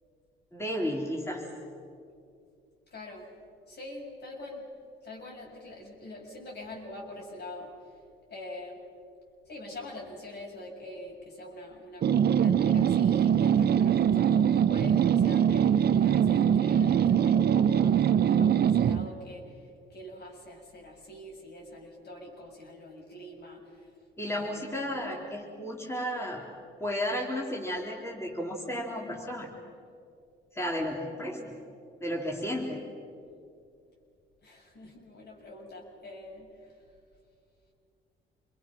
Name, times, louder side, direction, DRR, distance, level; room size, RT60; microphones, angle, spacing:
voice 1, 0.5-1.4 24.2-26.5 26.8-29.5 30.5-31.6 32.0-32.9, equal, 15° left, -2 dB, 3.5 m, -33 dB
voice 2, 2.9-3.3 3.7-4.7 5.0-8.0 8.3-8.8 9.4-23.9 24.3-25.0 34.4-36.9, left 1 dB, 55° left, -1 dB, 6.6 m, -44 dB
sound 1, 12.0-19.1, right 8 dB, 55° right, 0.8 m, -23 dB
28.0 x 22.0 x 6.2 m, 2.4 s
cardioid pair, 90°, 20 cm